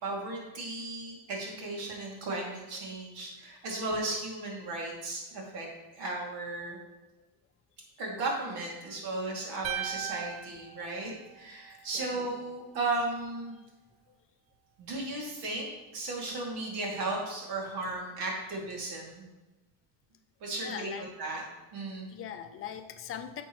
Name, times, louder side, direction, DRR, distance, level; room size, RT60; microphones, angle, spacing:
voice 1, 0.0-5.7 5.9-6.8 8.0-13.5 14.8-19.3 20.4-21.4 21.7-22.1, right 2 dB, 85° right, -2 dB, 2.6 m, -35 dB
sound 1, 9.6-11.9, right 10 dB, 40° right, 0.6 m, -38 dB
voice 2, 20.6-21.1 22.1-23.4, left 9 dB, 35° left, 8 dB, 0.4 m, -40 dB
9.2 x 6.9 x 3.1 m, 1.1 s
cardioid pair, 180°, 39 cm